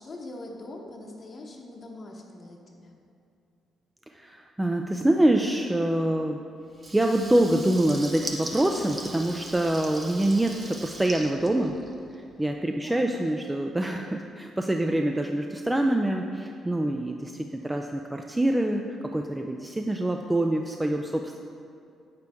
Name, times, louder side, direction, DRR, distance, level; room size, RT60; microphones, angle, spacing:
voice 1, 0.0-3.0 12.7-13.2, left 2 dB, 40° left, 0 dB, 0.9 m, -42 dB
voice 2, 4.1-6.4 6.9-11.7 12.4-18.8 19.1-21.4, right 1 dB, 10° right, 3 dB, 0.4 m, -25 dB
Water tap faucet / Liquid, 6.7-12.2, right 1 dB, 30° right, 0.8 m, -40 dB
8.2 x 6.7 x 3.5 m, 2.5 s
cardioid pair, 90°, 0 cm